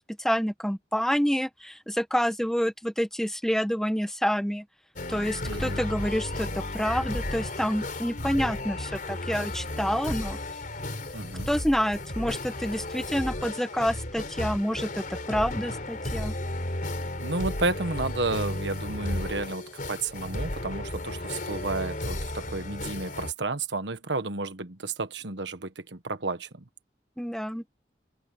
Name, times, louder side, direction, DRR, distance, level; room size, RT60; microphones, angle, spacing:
voice 1, 0.0-4.6 5.1-10.4 11.5-16.3 27.2-27.6, equal, 5° left, 1.4 m, -28 dB
sound 1, 5.0-23.3, left 1 dB, 50° left, 4.1 m, -34 dB
voice 2, 5.4-5.8 11.1-11.5 17.2-26.6, right 3 dB, 85° right, 1.4 m, -32 dB
open air
head